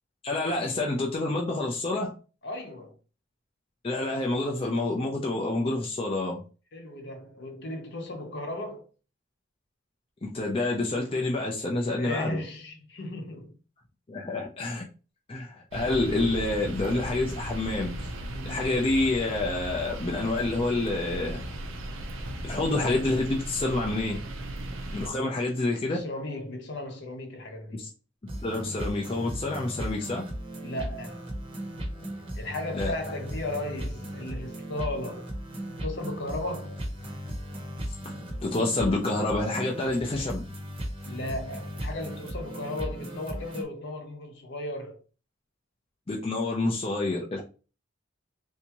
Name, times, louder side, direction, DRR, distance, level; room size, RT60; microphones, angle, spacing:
voice 1, 0.2-2.2 3.8-6.4 10.2-12.4 14.1-14.8 15.3-17.9 18.4-21.4 22.4-24.2 24.9-26.0 27.8-27.9 28.4-30.3 32.7-32.9 38.4-40.4 46.1-47.4, left 2 dB, 30° left, 0.5 m, -28 dB
voice 2, 2.4-2.9 6.7-8.8 11.9-13.5 18.3-18.7 25.1-25.5 25.8-27.9 30.6-31.3 32.3-35.3 35.8-36.8 41.0-45.0, left 1 dB, 60° left, 0.8 m, -36 dB
sound 1, 15.7-25.1, right 1 dB, 80° right, 0.7 m, -36 dB
sound 2, 28.3-43.6, equal, 25° right, 0.8 m, -36 dB
3.4 x 2.7 x 2.9 m
head